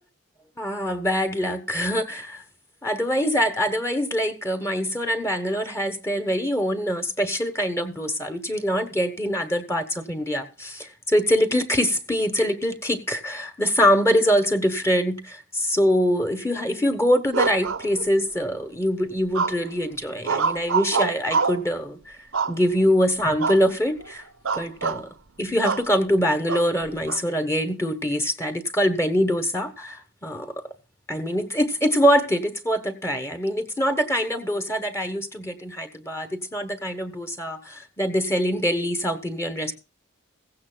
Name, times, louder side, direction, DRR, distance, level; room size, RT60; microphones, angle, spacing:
voice 1, 0.6-2.4 2.8-22.2 22.5-24.2 24.5-25.1 25.4-30.5 31.1-39.7, equal, 15° left, 1.1 m, -24 dB
sound 1, 17.3-18.4 19.3-19.8 20.2-21.7 22.3-22.9 23.4-23.7 24.0-24.1 24.5-25.0 25.6-25.9 26.5-27.2, right 5 dB, 80° right, 0.9 m, -26 dB
16.0 x 16.0 x 2.3 m
head